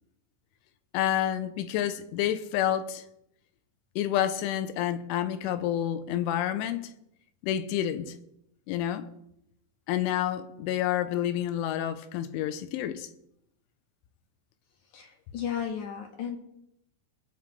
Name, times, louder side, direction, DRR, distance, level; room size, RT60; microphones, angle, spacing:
voice 1, 0.9-3.0 4.0-6.9 7.4-8.1 8.7-9.1 9.9-13.1, left 11 dB, 85° left, 3.2 m, -29 dB
voice 2, 14.9-16.4, left 8 dB, 60° left, 2.1 m, -34 dB
22.0 x 9.3 x 3.3 m
omnidirectional pair, 5.5 m